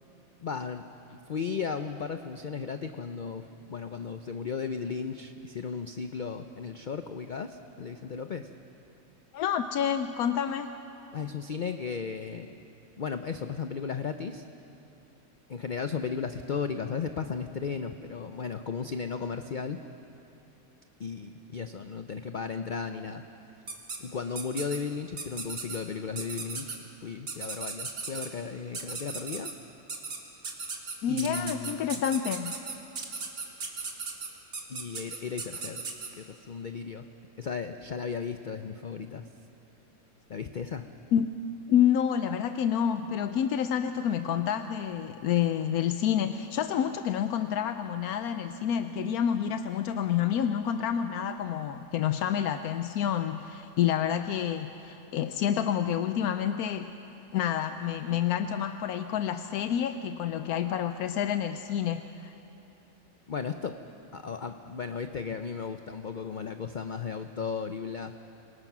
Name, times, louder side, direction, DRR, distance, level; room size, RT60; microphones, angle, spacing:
voice 1, 0.4-0.9 1.3-8.5 11.1-12.6 13.0-14.4 15.5-19.8 21.0-23.2 24.0-29.5 31.1-31.8 34.7-35.8 36.1-37.1 37.4-39.3 40.3-40.9 63.3-63.8 64.1-68.1, left 5 dB, 50° left, 8 dB, 0.6 m, -35 dB
voice 2, 9.3-10.7 31.0-32.5 41.1-41.3 41.7-56.9 57.3-62.3, left 9 dB, 85° left, 9 dB, 1.1 m, -28 dB
sound 1, 23.7-24.0 24.4-24.8 25.2-25.8 26.2-26.8 27.3-28.3 28.7-29.5 29.9-30.2 30.4-36.1, right 4 dB, 85° right, 2.3 m, -36 dB
26.5 x 19.5 x 6.0 m, 2.9 s
omnidirectional pair, 1.5 m